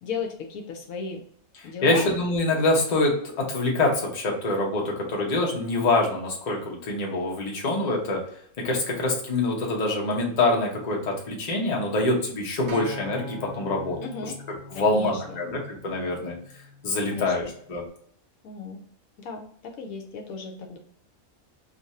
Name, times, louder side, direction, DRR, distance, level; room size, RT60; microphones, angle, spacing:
voice 1, 0.0-1.2 1.6-2.1 14.0-14.3 14.7-15.4 17.1-17.3 18.4-18.8 19.2-20.8, left 5 dB, 75° left, 3 dB, 1.0 m, -35 dB
voice 2, 1.5-8.2 8.6-14.3 14.7-16.4 16.8-17.8, left 2 dB, 35° left, -2 dB, 0.8 m, -25 dB
Acoustic guitar, 12.7-16.9 17.8-17.9, equal, 60° right, 0.5 m, -41 dB
2.6 x 2.5 x 4.0 m, 0.63 s
omnidirectional pair, 1.5 m